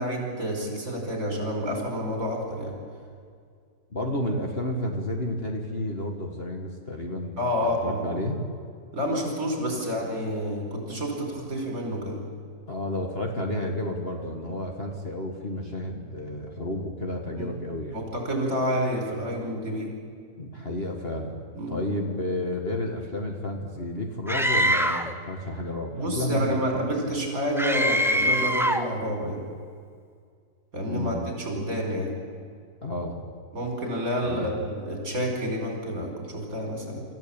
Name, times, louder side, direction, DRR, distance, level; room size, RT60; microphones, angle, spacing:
voice 1, 0.0-2.7 7.4-8.0 8.9-12.2 17.3-17.5 17.9-19.9 21.5-21.8 25.9-29.4 30.7-32.1 33.5-37.0, equal, 50° right, 1 dB, 5.6 m, -29 dB
voice 2, 3.9-8.4 12.7-18.0 20.4-21.4 21.7-26.6 30.8-31.3 32.8-33.2 34.2-34.5, left 1 dB, 35° left, 2 dB, 2.0 m, -31 dB
Screaming, 24.3-25.2 27.6-28.9, equal, 5° right, 0.5 m, -23 dB
26.5 x 14.5 x 8.9 m, 2.2 s
omnidirectional pair, 1.9 m